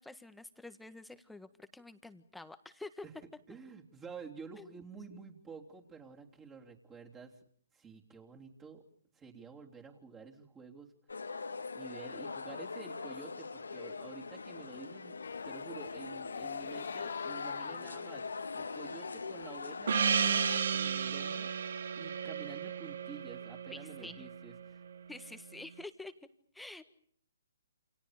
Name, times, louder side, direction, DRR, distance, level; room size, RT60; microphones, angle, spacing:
voice 1, 0.0-3.0 4.6-4.7 23.7-24.3 25.1-26.1 26.5-26.8, left 2 dB, 5° left, 10 dB, 1.6 m, -48 dB
voice 2, 3.5-7.4 7.7-8.8 9.1-10.9 11.7-15.2 15.4-18.3 18.5-21.5 21.9-24.8, right 5 dB, 15° right, 0 dB, 3.4 m, -50 dB
sound 1, 11.1-20.6, left 4 dB, 90° left, 2.3 m, -42 dB
sound 2, 15.2-20.3, left 6 dB, 70° left, 1.7 m, -46 dB
Gong, 19.9-24.6, right 7 dB, 65° right, 1.6 m, -33 dB
29.0 x 28.5 x 5.1 m, 0.62 s
hypercardioid pair, 145°, 0 cm